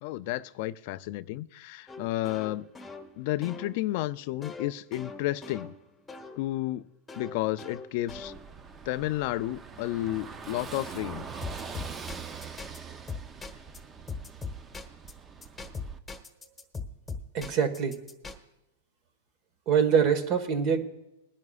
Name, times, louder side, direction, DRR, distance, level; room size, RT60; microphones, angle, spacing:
voice 1, 0.0-2.7 3.2-5.7 6.4-6.8 7.2-8.3 8.9-11.2, left 16 dB, 50° left, 0.4 m, -31 dB
sound 1, 1.9-6.4 7.1-8.7 11.4-12.8 13.1-13.8 14.1-15.1 15.4-18.3, left 4 dB, 5° left, 1.3 m, -41 dB
Car passing by / Engine, 8.1-16.0, right 5 dB, 20° right, 0.7 m, -43 dB
voice 2, 17.3-17.9 19.7-20.8, right 7 dB, 40° right, 1.5 m, -24 dB
21.5 x 10.5 x 2.4 m
hypercardioid pair, 140°, 0 cm